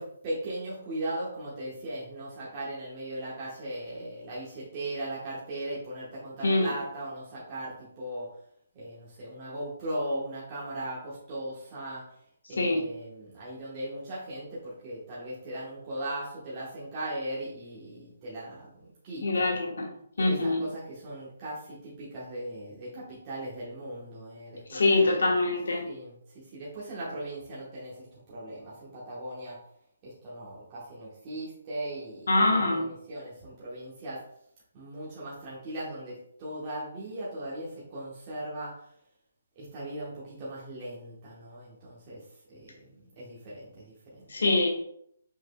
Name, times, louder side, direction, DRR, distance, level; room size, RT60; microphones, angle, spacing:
voice 1, 0.0-8.3 8.7-12.0 12.5-19.5 20.2-25.4 25.8-26.1 26.5-29.6 30.0-34.2 34.7-38.7 39.6-42.2 42.5-42.9 43.2-44.3, right 1 dB, 25° right, -8 dB, 1.1 m, -38 dB
voice 2, 19.2-19.7 20.2-20.6 24.7-25.8 32.3-32.9 44.3-44.7, left 2 dB, 90° left, 0 dB, 1.1 m, -24 dB
5.2 x 4.0 x 2.2 m, 0.70 s
hypercardioid pair, 170°, 0 cm